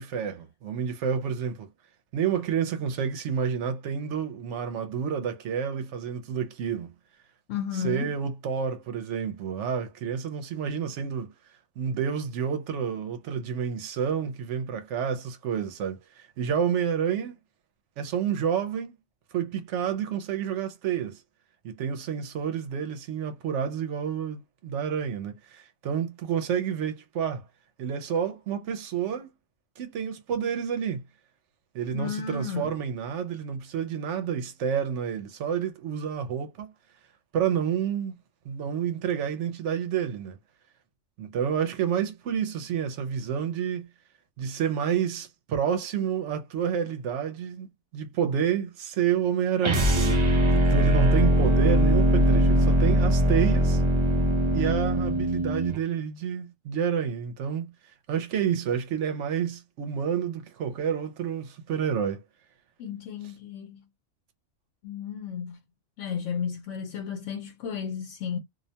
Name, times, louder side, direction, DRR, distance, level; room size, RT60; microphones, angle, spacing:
voice 1, 0.0-1.7 2.1-6.9 7.7-11.3 11.8-17.4 18.0-18.9 19.3-21.2 21.6-27.4 27.8-29.3 29.8-31.0 31.7-36.7 37.3-38.2 38.4-40.4 41.2-43.9 44.4-47.7 47.9-53.8 54.5-57.7 58.1-62.2, right 8 dB, 80° right, 0.9 m, -29 dB
voice 2, 7.5-8.1 31.9-32.7 62.8-63.8 64.8-65.6 66.0-68.4, left 7 dB, 90° left, 0.9 m, -33 dB
sound 1, 49.6-55.8, equal, 40° right, 0.4 m, -21 dB
2.5 x 2.1 x 2.7 m
omnidirectional pair, 1.2 m